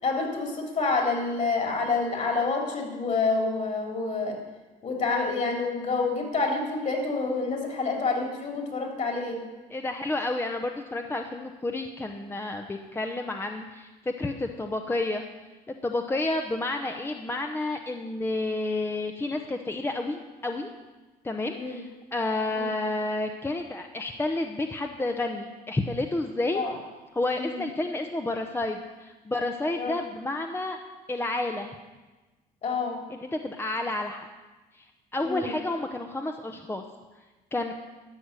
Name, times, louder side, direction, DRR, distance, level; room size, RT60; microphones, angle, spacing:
voice 1, 0.0-4.3 4.8-9.4 21.5-21.8 22.5-22.7 26.5-26.8 27.4-27.6 29.8-29.9 32.6-33.0 35.2-35.5, left 3 dB, 45° left, 2 dB, 3.4 m, -28 dB
voice 2, 9.7-15.2 15.8-20.7 21.2-26.6 27.1-30.8 31.1-31.7 33.1-34.3 34.7-36.8 37.5-37.8, left 2 dB, 15° left, 4 dB, 0.8 m, -30 dB
13.0 x 6.2 x 9.6 m, 1.2 s
cardioid pair, 110°, 17 cm